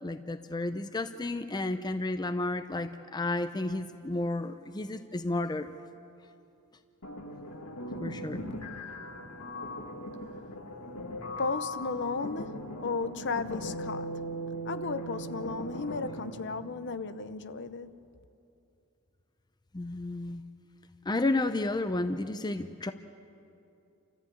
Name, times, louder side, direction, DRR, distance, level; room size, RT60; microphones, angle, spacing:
voice 1, 0.0-5.7 8.0-8.4 19.7-20.4 21.1-22.9, left 2 dB, 20° left, 0.5 m, -32 dB
sound 1, 7.0-16.6, equal, 85° left, 2.1 m, -39 dB
voice 2, 11.4-14.1 14.6-17.9, left 4 dB, 50° left, 0.8 m, -34 dB
29.5 x 14.0 x 8.6 m
head